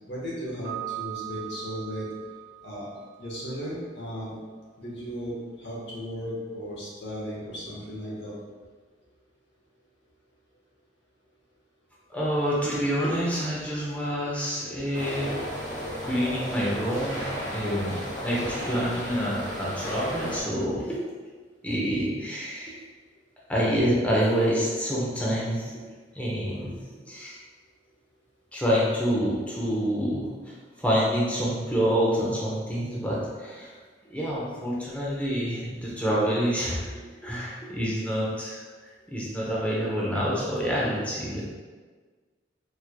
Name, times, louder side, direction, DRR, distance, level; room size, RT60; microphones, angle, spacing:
voice 1, 0.1-2.1 2.6-2.9 3.2-4.4 4.8-8.3, equal, 65° left, -6 dB, 1.1 m, -35 dB
Piano, 0.6-3.5, right 16 dB, 50° right, 1.1 m, -39 dB
voice 2, 12.1-15.4 16.0-21.1 21.6-22.8 23.5-25.8 26.1-26.8 27.1-27.4 28.5-30.3 30.8-33.7 34.1-36.9 37.2-38.6 39.1-41.5, equal, 10° left, -6 dB, 0.8 m, -27 dB
sound 1, 14.9-20.4, equal, 80° left, 1.4 m, -34 dB
4.4 x 3.2 x 2.2 m, 1.4 s
head